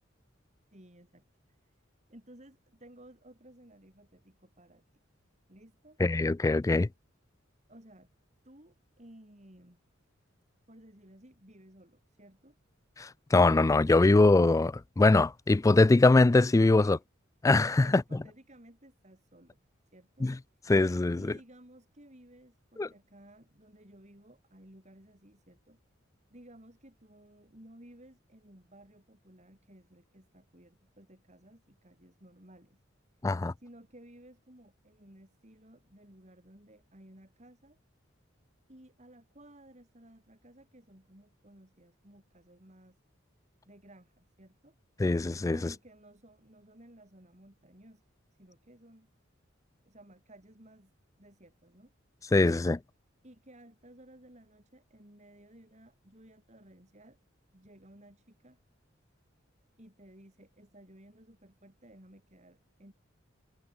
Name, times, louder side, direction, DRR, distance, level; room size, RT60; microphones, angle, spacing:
voice 1, 0.7-1.7 2.1-4.8 5.5-6.0 7.7-8.1 8.4-9.8 10.7-12.6 16.8-17.0 17.8-19.6 19.9-20.3 21.2-25.8 26.3-32.8 33.6-37.8 38.7-43.0 43.6-44.8 45.5-48.0 48.4-49.1 49.8-50.9 51.2-51.9 53.2-57.2 57.5-58.6 59.8-62.9, right 1 dB, 35° right, 6.2 m, -56 dB
voice 2, 6.0-6.9 13.0-17.0 17.4-18.0 20.2-20.4 20.7-21.3 22.8-22.9 33.2-33.5 45.0-45.7 52.3-52.8, left 2 dB, 15° left, 0.3 m, -23 dB
head